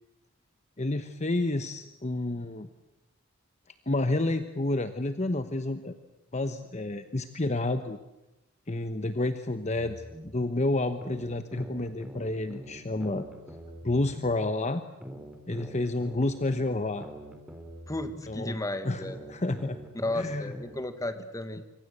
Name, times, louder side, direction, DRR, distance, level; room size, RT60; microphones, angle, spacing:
voice 1, 0.8-2.7 3.9-6.0 6.3-8.0 8.7-13.3 13.8-14.8 15.5-17.1 18.3-18.6 18.8-19.0 19.3-19.8 20.1-20.5, left 2 dB, 35° left, 9 dB, 1.1 m, -29 dB
sound 1, 9.7-10.5 11.0-14.5 15.0-18.5 19.0-21.0, right 1 dB, 5° right, 3.3 m, -44 dB
voice 2, 17.9-19.2 19.9-21.6, left 1 dB, 15° left, 10 dB, 1.7 m, -33 dB
25.0 x 25.0 x 8.1 m, 0.95 s
head